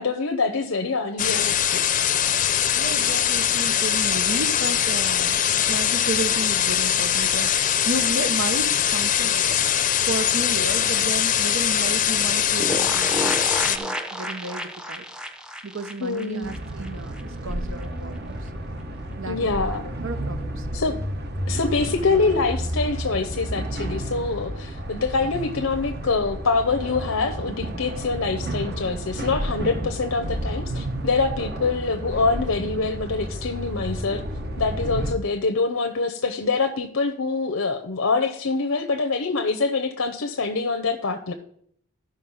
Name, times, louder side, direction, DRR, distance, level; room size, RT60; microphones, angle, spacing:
voice 1, 0.0-1.8 16.0-16.5 19.3-19.8 20.7-21.0 21.5-34.2 34.6-41.3, left 4 dB, 85° left, 7 dB, 0.8 m, -25 dB
sound 1, 1.2-13.8, left 9 dB, 40° left, 0.6 m, -22 dB
voice 2, 2.7-5.4 5.7-9.6 10.0-13.4 13.7-15.0 15.6-18.5 19.2-20.7, right 3 dB, 70° right, 9 dB, 0.9 m, -32 dB
sound 2, 12.6-17.2 17.5-17.6 17.8-17.9, equal, 5° right, 0.7 m, -31 dB
sound 3, 16.4-35.1, right 1 dB, 50° right, 1.2 m, -31 dB
12.5 x 5.5 x 5.6 m, 0.64 s
head